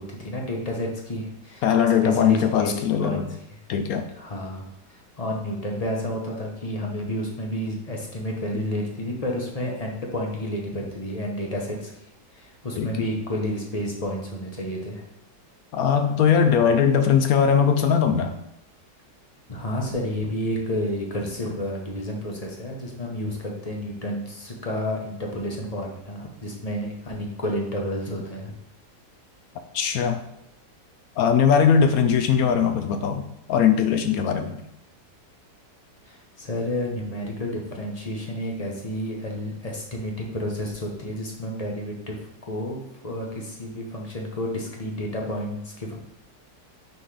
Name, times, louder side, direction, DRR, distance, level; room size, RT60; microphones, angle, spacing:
voice 1, 0.0-1.6 2.0-2.7 3.0-3.2 4.2-4.6 4.9-11.9 12.3-15.0 19.5-28.5 36.0-42.2 42.4-46.0, equal, 30° left, 0 dB, 0.7 m, -30 dB
voice 2, 1.6-3.2 3.7-4.1 12.8-12.9 15.7-18.4 29.7-30.2 31.2-33.2 33.5-34.6, left 7 dB, 70° left, 8 dB, 0.8 m, -20 dB
5.7 x 5.3 x 3.3 m, 0.82 s
omnidirectional pair, 1.9 m